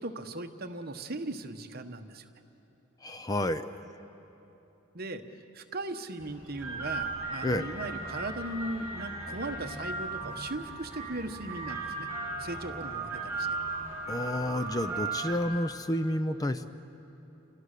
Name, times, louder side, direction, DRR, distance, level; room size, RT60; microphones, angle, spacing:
voice 1, 0.0-2.3 4.9-5.2 5.5-12.1 12.4-13.5, right 2 dB, 45° right, 7 dB, 1.2 m, -38 dB
voice 2, 3.0-3.7 7.4-7.7 14.1-16.6, left 1 dB, 15° left, 11 dB, 0.5 m, -30 dB
sound 1, 6.2-15.4, right 3 dB, 10° right, 7.6 m, -37 dB
30.0 x 24.5 x 6.7 m, 2.9 s
head